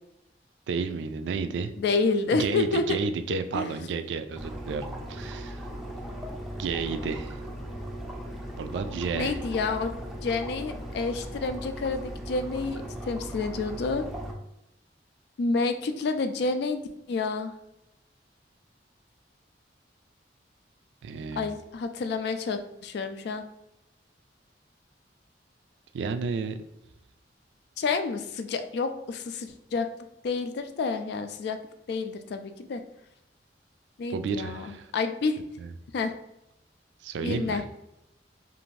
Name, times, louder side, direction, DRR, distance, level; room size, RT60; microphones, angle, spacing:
voice 1, 0.7-1.7 2.3-5.7 6.6-7.4 8.6-9.4 21.0-21.5 25.9-26.6 34.1-34.9 35.6-35.7 37.0-37.6, right 5 dB, 80° right, 9 dB, 0.3 m, -31 dB
voice 2, 1.8-3.0 3.3-3.7 9.1-9.9 10.2-12.8 13.1-14.1 15.4-16.8 17.1-17.5 21.4-23.4 27.8-29.9 30.2-31.6 31.9-32.8 34.0-35.4 35.9-36.1 37.2-37.6, left 4 dB, 65° left, 8 dB, 0.3 m, -29 dB
sound 1, 4.3-14.3, equal, ahead, 0.4 m, -38 dB
2.6 x 2.4 x 3.1 m, 0.84 s
head